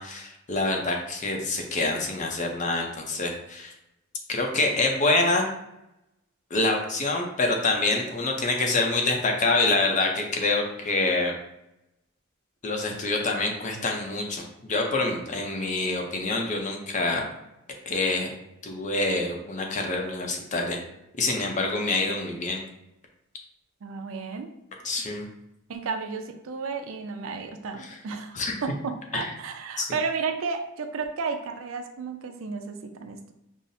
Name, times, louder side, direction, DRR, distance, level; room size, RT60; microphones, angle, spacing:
voice 1, 0.0-3.7 4.3-5.4 6.5-11.4 12.6-17.2 17.9-18.3 18.6-20.8 21.2-22.6 24.8-25.3 28.3-28.5 29.1-29.3 29.8-29.9, left 2 dB, 35° left, 2 dB, 0.6 m, -26 dB
voice 2, 23.8-24.5 25.7-33.3, right 5 dB, 75° right, 5 dB, 0.4 m, -33 dB
5.5 x 2.0 x 2.6 m, 0.86 s
head